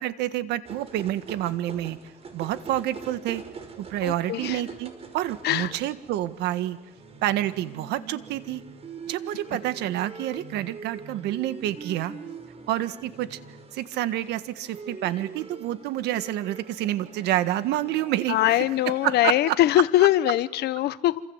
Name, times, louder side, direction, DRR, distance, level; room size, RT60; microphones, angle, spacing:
voice 1, 0.0-2.0 2.3-3.4 3.8-6.8 7.2-8.6 9.1-12.1 12.7-13.4 13.7-18.6 18.9-19.5, right 13 dB, 85° right, 12 dB, 1.6 m, -28 dB
sound 1, 0.6-19.2, right 5 dB, 35° right, 5.4 m, -43 dB
voice 2, 4.0-4.6 5.4-5.7 18.3-21.2, left 15 dB, 75° left, 15 dB, 1.2 m, -22 dB
28.0 x 26.5 x 8.1 m, 0.88 s
cardioid pair, 110°, 17 cm